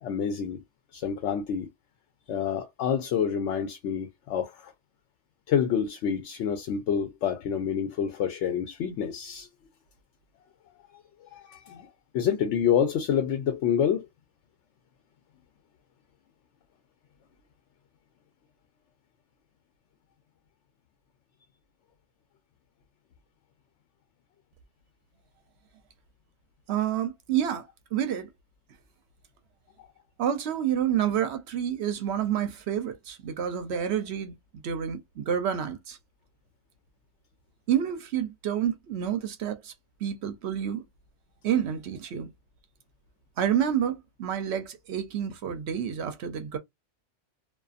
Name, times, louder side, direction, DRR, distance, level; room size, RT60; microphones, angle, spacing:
voice 1, 0.0-0.6 0.9-1.7 2.3-4.7 5.5-9.5 11.3-11.9 12.1-14.1 29.8-29.9, left 8 dB, 85° left, 0.9 m, -27 dB
voice 2, 26.7-28.3 30.2-34.3 34.6-36.0 37.7-39.7 40.0-40.8 41.4-42.3 43.4-46.6, right 9 dB, 70° right, 0.8 m, -29 dB
2.5 x 2.4 x 2.4 m
omnidirectional pair, 1.2 m